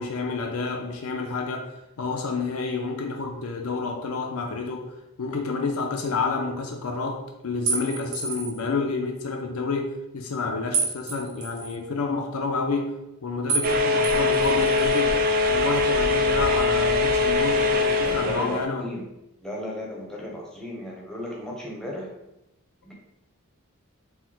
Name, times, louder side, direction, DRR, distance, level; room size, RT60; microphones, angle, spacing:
voice 1, 0.0-1.7 2.0-12.9 13.2-15.2 15.5-18.8, left 4 dB, 85° left, 3 dB, 0.5 m, -29 dB
sound 1, 7.7-8.6 10.7-11.7 13.5-13.7 14.0-15.0, right 4 dB, 85° right, 1.4 m, -29 dB
sound 2, 13.6-18.6, left 3 dB, 40° right, 0.4 m, -22 dB
voice 2, 18.0-19.0 19.4-22.1 22.8-22.9, left 1 dB, 5° left, -3 dB, 0.7 m, -35 dB
4.6 x 2.1 x 3.8 m, 0.90 s
head